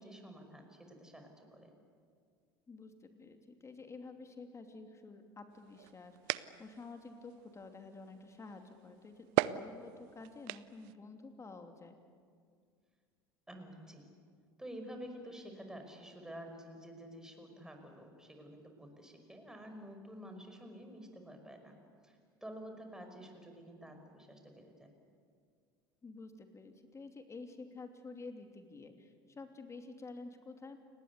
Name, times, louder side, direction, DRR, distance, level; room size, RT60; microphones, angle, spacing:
voice 1, 0.0-1.7 13.5-14.0 14.6-21.8 22.0-24.9, equal, 5° right, 4 dB, 5.4 m, -50 dB
voice 2, 2.7-12.0 26.0-30.8, left 3 dB, 25° left, 6 dB, 2.8 m, -50 dB
sound 1, 5.5-10.9, right 17 dB, 60° right, 0.7 m, -40 dB
29.5 x 19.5 x 8.3 m, 2.1 s
figure-of-eight pair, 70°, 12 cm